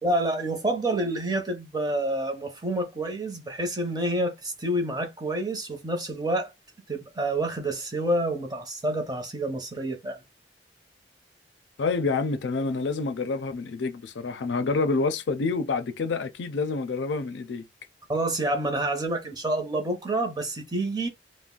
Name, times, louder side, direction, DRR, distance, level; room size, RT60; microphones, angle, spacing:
voice 1, 0.0-6.5 6.9-10.2 18.1-21.1, right 1 dB, 20° right, 0.7 m, -28 dB
voice 2, 11.8-17.6, left 4 dB, 90° left, 0.4 m, -27 dB
2.4 x 2.1 x 3.7 m
head